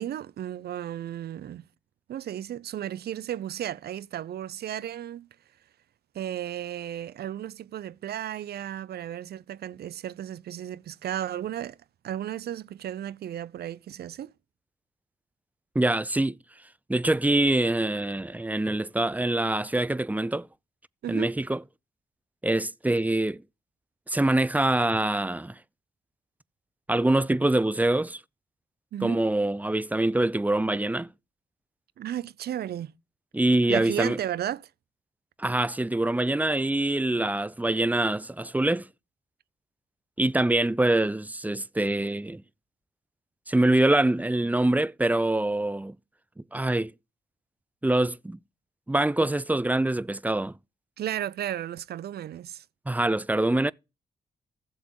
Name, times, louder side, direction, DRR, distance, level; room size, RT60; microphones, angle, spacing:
voice 1, 0.0-1.6 2.1-5.3 6.1-11.8 12.0-14.3 21.0-21.3 28.9-29.2 32.0-32.9 33.7-34.7 51.0-52.6, right 11 dB, 60° right, 0.5 m, -34 dB
voice 2, 15.7-16.4 16.9-20.5 21.1-21.6 22.4-23.4 24.1-25.6 26.9-28.2 29.0-31.1 33.3-34.2 35.4-38.9 40.2-42.4 43.5-45.9 46.5-46.9 47.8-48.4 48.9-50.5 52.9-53.7, right 1 dB, 10° right, 0.5 m, -24 dB
15.0 x 7.2 x 3.0 m
hypercardioid pair, 45°, 19 cm